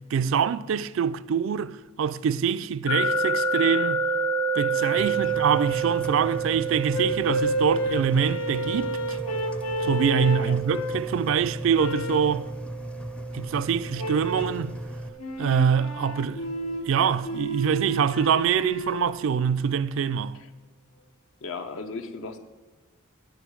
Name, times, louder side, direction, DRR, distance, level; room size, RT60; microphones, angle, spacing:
voice 1, 0.1-4.1 4.5-9.2 9.8-12.5 13.3-14.8 15.4-16.4 16.8-20.4, right 7 dB, 65° right, 0.3 m, -25 dB
sound 1, 2.9-15.8, right 3 dB, 55° left, 1.1 m, -30 dB
Engine, 5.0-15.1, equal, 5° left, 0.4 m, -37 dB
sound 2, 6.9-11.1 11.7-12.4 14.0-14.6 15.2-19.2, equal, 90° left, 0.9 m, -31 dB
voice 2, 21.4-22.4, left 4 dB, 70° left, 0.6 m, -36 dB
10.0 x 8.0 x 4.7 m
head